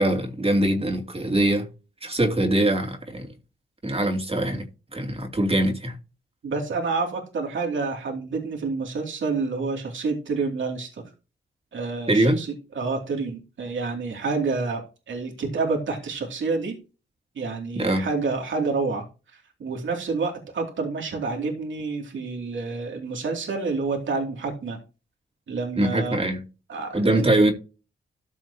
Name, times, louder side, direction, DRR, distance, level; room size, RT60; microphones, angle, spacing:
voice 1, 0.0-1.7 2.0-3.3 3.8-4.7 4.9-5.9 12.1-12.4 17.7-18.1 25.8-26.4 26.9-27.5, right 1 dB, 30° right, 2.7 m, -22 dB
voice 2, 6.4-11.0 11.7-12.5 12.7-14.8 15.1-16.8 17.3-19.0 19.6-24.8 25.5-26.2 26.7-27.3, right 4 dB, 70° right, 2.7 m, -28 dB
14.0 x 6.0 x 2.9 m
supercardioid pair, 40°, 21 cm